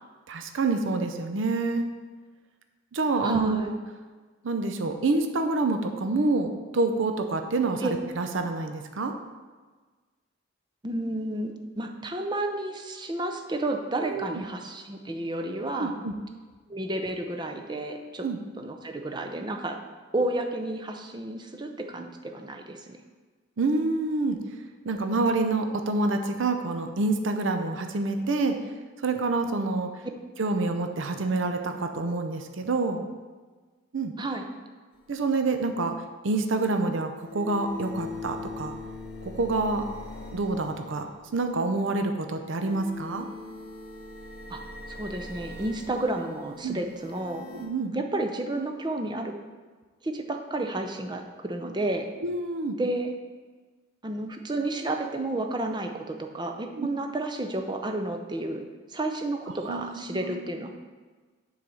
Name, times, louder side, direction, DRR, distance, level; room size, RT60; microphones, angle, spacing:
voice 1, 0.3-1.8 2.9-3.7 4.4-9.1 14.0-14.4 15.8-16.1 18.2-18.4 23.6-24.4 24.8-28.6 29.0-29.9 30.4-33.0 33.9-34.1 35.1-35.9 36.2-38.7 39.2-39.8 40.3-41.0 41.3-43.3 46.6-46.8 47.6-47.9 52.2-52.8 56.8-56.9 59.7-60.4, right 3 dB, 65° right, 6 dB, 0.6 m, -27 dB
voice 2, 3.2-3.7 7.8-7.9 10.8-15.9 16.7-18.3 18.6-19.8 20.1-23.0 34.2-34.5 44.5-44.6 44.9-47.5 47.9-49.3 50.0-52.1 52.8-53.1 54.0-60.8, right 2 dB, 20° right, 4 dB, 0.5 m, -31 dB
sound 1, 34.9-35.0 37.1-41.6 42.4-47.7, left 3 dB, 50° left, 1.1 m, -41 dB
7.3 x 3.9 x 6.2 m, 1.4 s
head